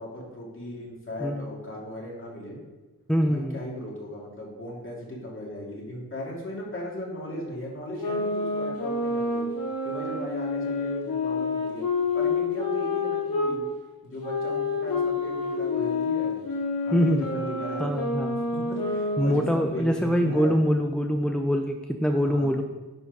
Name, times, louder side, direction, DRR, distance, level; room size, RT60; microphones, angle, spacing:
voice 1, 0.0-2.6 3.2-9.5 9.8-11.9 12.1-13.6 14.0-16.4 16.8-17.9 18.5-20.6 22.1-22.5, left 1 dB, 35° left, -3 dB, 2.5 m, -37 dB
voice 2, 3.1-3.6 16.9-17.3 17.8-18.4 19.2-22.6, equal, 5° left, 4 dB, 0.4 m, -24 dB
sound 1, 8.0-13.5 14.2-19.7, left 3 dB, 65° left, 2.3 m, -28 dB
10.5 x 4.4 x 5.4 m, 1.2 s
wide cardioid pair, 165°, 37 cm